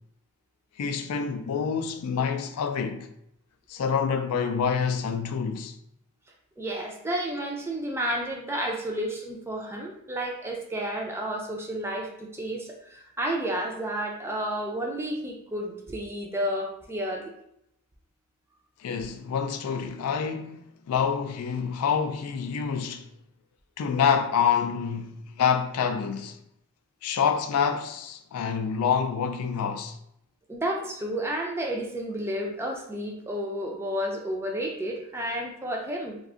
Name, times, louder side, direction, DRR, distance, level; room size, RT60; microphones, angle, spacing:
voice 1, 0.8-3.1 3.7-5.8 18.8-23.1 23.8-26.4 27.0-30.0, left 6 dB, 80° left, 0.3 m, -27 dB
voice 2, 6.6-17.3 30.5-36.2, right 1 dB, 10° right, 0.4 m, -31 dB
2.4 x 2.2 x 3.6 m
head